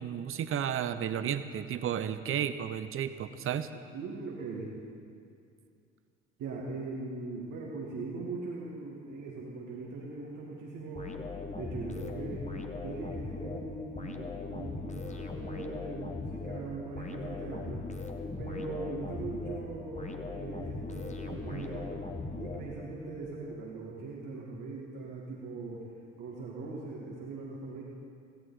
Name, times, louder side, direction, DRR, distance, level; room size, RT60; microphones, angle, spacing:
voice 1, 0.0-3.7, right 9 dB, 35° right, 12 dB, 0.8 m, -33 dB
voice 2, 3.7-4.8 6.4-11.1 11.6-12.5 12.8-17.9 18.4-21.9 22.4-25.9 26.2-27.8, right 3 dB, 55° right, -3 dB, 2.4 m, -40 dB
sound 1, 10.9-23.1, left 3 dB, 20° left, 1.6 m, -39 dB
17.0 x 16.0 x 4.2 m, 2.3 s
figure-of-eight pair, 55°, 38 cm